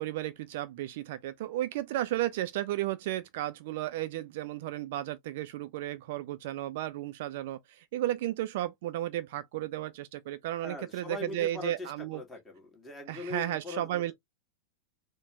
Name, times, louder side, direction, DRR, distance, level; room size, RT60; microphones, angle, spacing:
voice 1, 0.0-12.2 13.1-14.1, right 14 dB, 50° right, 0.4 m, -34 dB
voice 2, 10.6-14.1, left 3 dB, 15° left, 1.5 m, -41 dB
4.1 x 2.2 x 2.7 m
figure-of-eight pair, 90°, 0 cm